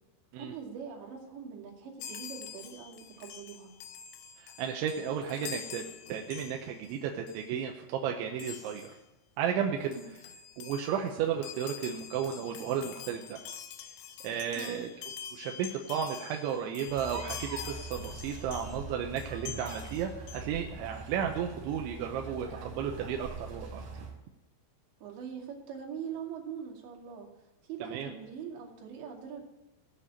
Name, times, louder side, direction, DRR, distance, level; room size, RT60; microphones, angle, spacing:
voice 1, 0.3-3.7 9.8-10.1 14.5-14.9 25.0-27.3 27.6-29.4, right 7 dB, 65° right, -1 dB, 4.6 m, -42 dB
Chime, 2.0-7.0 7.3-7.5 8.4-9.0 9.6-9.7 9.8-18.8 19.2-20.4, left 9 dB, 80° left, 2.3 m, -46 dB
voice 2, 4.4-8.9 9.4-9.9 10.6-13.4 14.2-14.9 15.3-23.9 27.8-28.1, right 8 dB, 80° right, 2 dB, 3.1 m, -33 dB
sound 1, 16.9-24.1, right 3 dB, 35° right, 5.4 m, -43 dB
17.5 x 6.9 x 8.8 m, 1.0 s
omnidirectional pair, 5.7 m